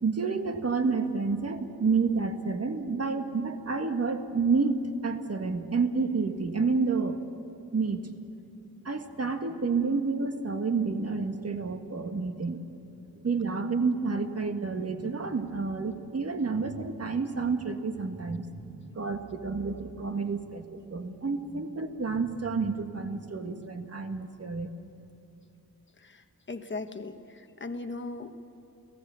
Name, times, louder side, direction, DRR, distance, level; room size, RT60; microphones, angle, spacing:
voice 1, 0.0-7.2 7.7-8.1 8.8-12.6 13.2-24.7, right 4 dB, 45° right, 6 dB, 1.7 m, -29 dB
voice 2, 26.5-28.4, left 3 dB, 30° left, 7 dB, 1.3 m, -37 dB
29.5 x 18.5 x 7.0 m, 2.9 s
wide cardioid pair, 145°, 36 cm